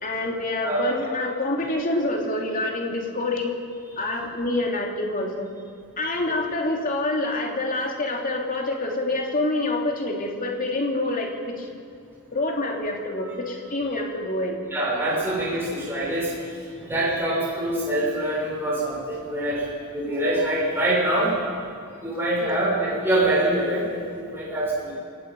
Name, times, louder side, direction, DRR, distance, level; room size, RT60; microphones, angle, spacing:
voice 1, 0.0-3.5 4.0-5.5 6.0-11.7 12.3-14.6 22.3-22.6, left 2 dB, 40° left, 1 dB, 2.9 m, -27 dB
voice 2, 14.7-16.3 16.8-19.6 19.9-21.3 22.0-25.0, right 1 dB, 10° right, -7 dB, 6.2 m, -24 dB
28.0 x 17.5 x 5.5 m, 2.4 s
head